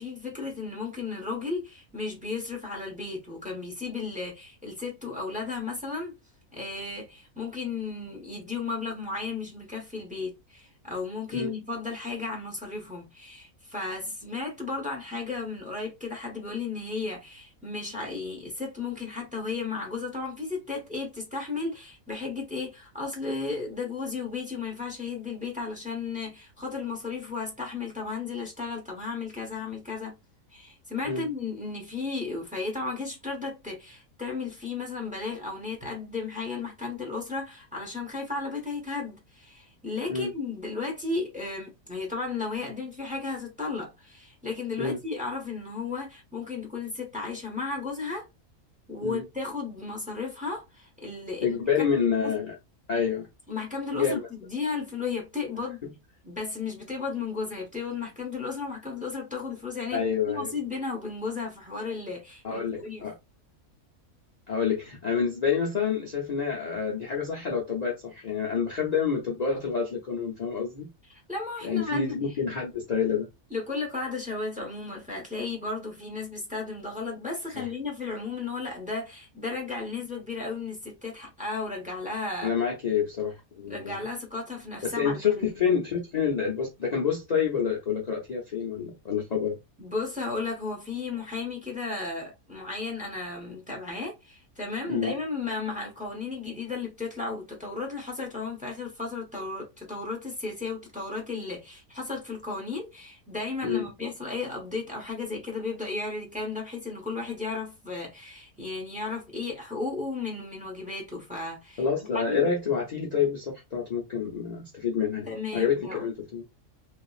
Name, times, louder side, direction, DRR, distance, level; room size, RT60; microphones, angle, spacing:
voice 1, 0.0-6.1 6.5-30.2 30.5-48.3 48.9-52.0 52.2-52.3 53.5-55.8 56.2-63.1 71.3-72.1 73.5-82.5 83.7-85.6 89.8-111.8 112.1-112.5 115.3-116.1, left 4 dB, 5° right, 0.7 m, -34 dB
voice 2, 51.4-52.5 52.9-53.3 53.9-54.3 55.8-55.9 59.9-60.5 62.4-63.2 64.5-70.9 71.6-73.3 77.5-77.7 82.4-84.0 84.8-89.6 94.9-95.1 103.6-103.9 111.8-116.4, left 6 dB, 60° left, 0.4 m, -28 dB
2.9 x 2.4 x 2.3 m
omnidirectional pair, 1.5 m